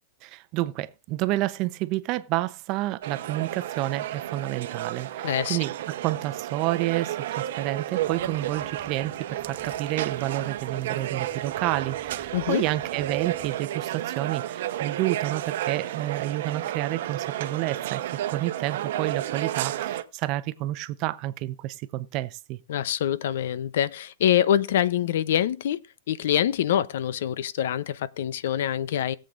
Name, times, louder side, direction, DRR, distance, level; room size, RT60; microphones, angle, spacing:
voice 1, 0.2-18.0 18.3-22.6, right 16 dB, 40° right, 0.7 m, -30 dB
sound 1, 3.0-20.0, right 12 dB, 70° right, 0.9 m, -32 dB
voice 2, 5.2-5.6 12.3-12.6 22.7-29.2, left 10 dB, 75° left, 0.6 m, -25 dB
sound 2, 8.0-13.5, left 4 dB, 15° left, 4.3 m, -52 dB
20.5 x 7.6 x 2.5 m
supercardioid pair, 145°, 0 cm